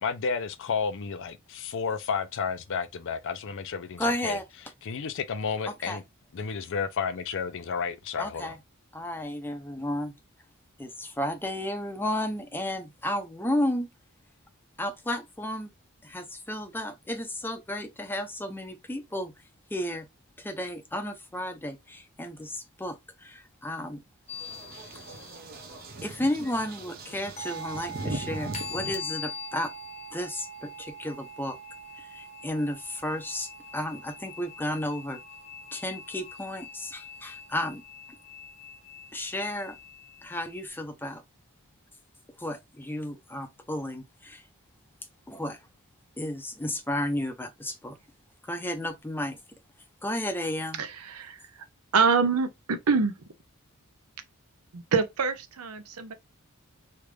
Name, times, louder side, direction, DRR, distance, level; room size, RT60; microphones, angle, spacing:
voice 1, 0.0-4.4 4.8-6.0 6.3-8.6, left 5 dB, 60° left, 0.5 m, -31 dB
voice 2, 4.0-4.4 5.9-6.0 8.2-8.6 8.9-10.1 10.8-13.9 14.8-15.7 16.0-19.3 19.7-20.1 20.4-24.0 26.0-29.7 30.1-31.6 32.0-35.2 35.7-37.8 39.1-39.8 40.2-41.2 42.4-44.4 45.3-45.6 46.2-48.0 48.4-49.4 50.0-50.8, left 1 dB, 10° left, 0.6 m, -33 dB
sound 1, 24.3-25.8 27.4-40.7, left 1 dB, 30° left, 0.8 m, -42 dB
sound 2, 24.3-29.0, right 2 dB, 45° right, 0.7 m, -39 dB
voice 3, 50.8-51.4 51.9-53.1 54.7-56.1, right 5 dB, 80° right, 0.7 m, -25 dB
3.3 x 2.5 x 3.1 m
head